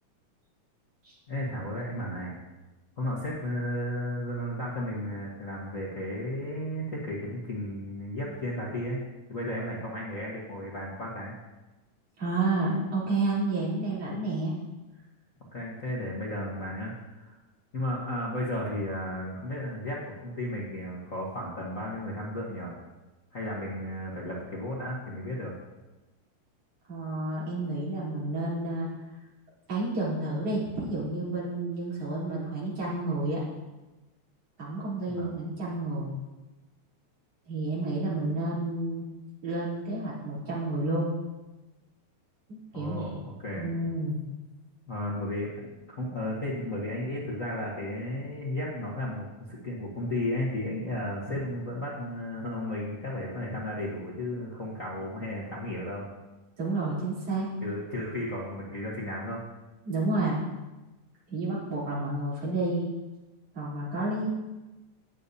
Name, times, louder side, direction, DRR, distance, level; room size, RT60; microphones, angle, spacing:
voice 1, 1.3-2.3 3.0-9.0 9.3-11.3 15.5-17.4 17.7-22.7 23.3-25.5 35.2-35.3 42.7-43.6 44.9-45.5 45.9-56.1 57.6-59.4, left 1 dB, 55° left, -5 dB, 0.9 m, -34 dB
voice 2, 12.2-14.5 26.9-28.9 29.7-33.4 34.6-36.1 37.5-39.1 39.4-41.1 42.5-43.2 43.5-44.2 56.6-57.5 59.8-60.4 61.3-62.8 63.5-64.3, right 2 dB, 50° right, -8 dB, 4.5 m, -30 dB
18.0 x 6.7 x 2.8 m, 1.1 s
omnidirectional pair, 3.5 m